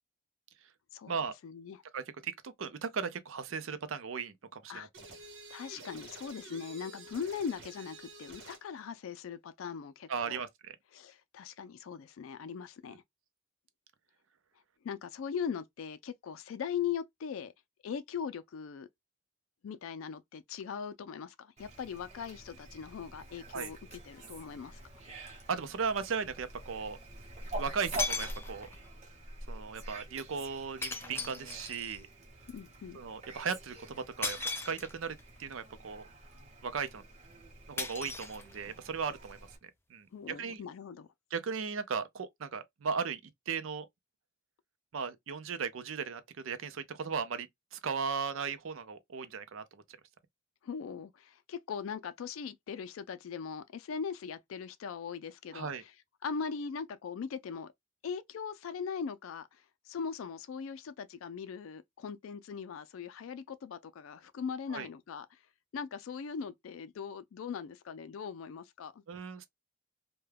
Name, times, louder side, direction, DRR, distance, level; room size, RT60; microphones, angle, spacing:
voice 1, 0.9-1.8 4.7-4.9 5.5-10.4 10.9-13.0 14.8-17.5 17.8-18.9 19.6-24.8 32.5-33.0 40.1-41.1 50.6-55.9 56.2-57.7 58.0-65.4 65.7-69.0, left 6 dB, 90° left, 0.4 m, -40 dB
voice 2, 1.9-4.9 10.1-10.7 23.5-23.7 25.5-27.0 27.6-28.7 29.5-32.1 32.9-34.4 34.6-36.1 36.6-37.0 37.7-39.4 39.9-40.6 41.3-43.2 43.5-43.9 44.9-49.8 55.5-55.8 64.7-64.9 69.1-69.5, right 5 dB, 85° right, 0.5 m, -37 dB
sound 1, 4.9-8.7, right 3 dB, 65° right, 0.9 m, -50 dB
Fowl, 21.6-39.6, right 2 dB, 35° right, 0.8 m, -46 dB
sound 2, 25.3-25.4 27.4-27.5 28.0-28.9 30.8-32.1 34.2-35.2 37.8-38.9, left 3 dB, 10° left, 0.3 m, -37 dB
2.2 x 2.2 x 3.3 m
head